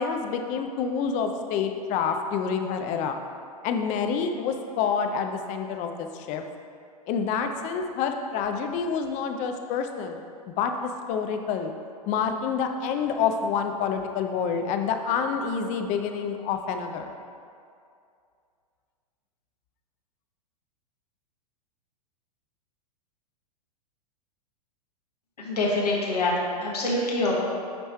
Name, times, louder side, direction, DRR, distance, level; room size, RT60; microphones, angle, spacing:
voice 1, 0.0-3.2 3.6-6.4 7.1-10.2 10.6-11.7 12.1-17.1, left 6 dB, 40° left, 6 dB, 0.7 m, -28 dB
voice 2, 25.4-26.3 26.6-27.4, left 2 dB, 85° left, -4 dB, 1.5 m, -25 dB
10.0 x 3.4 x 4.4 m, 2.4 s
hypercardioid pair, 105°, 20 cm